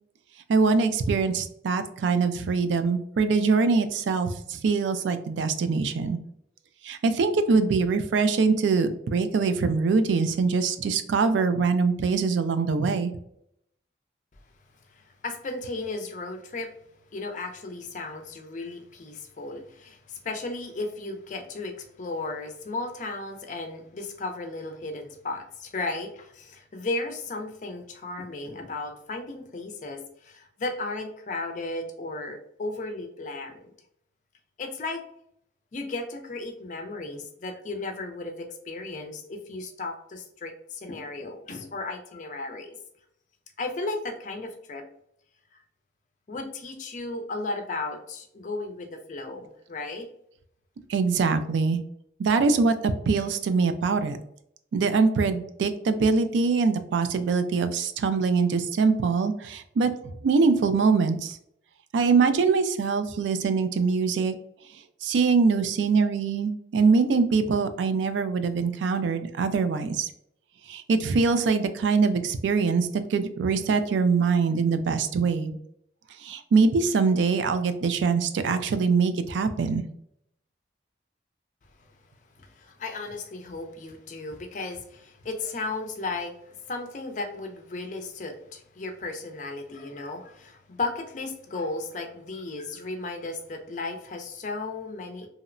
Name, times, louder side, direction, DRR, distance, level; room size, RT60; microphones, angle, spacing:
voice 1, 0.5-6.2 6.8-13.1 50.9-51.8 52.2-54.2 54.7-59.9 60.2-61.4 61.9-64.3 65.0-70.1 70.7-75.6 76.2-79.8, right 4 dB, 75° right, 10 dB, 0.3 m, -23 dB
voice 2, 14.9-16.7 17.1-33.7 34.6-35.0 35.7-42.8 43.6-44.8 46.3-50.0 82.4-95.3, left 3 dB, 40° left, 4 dB, 0.4 m, -35 dB
2.8 x 2.0 x 2.4 m, 0.73 s
head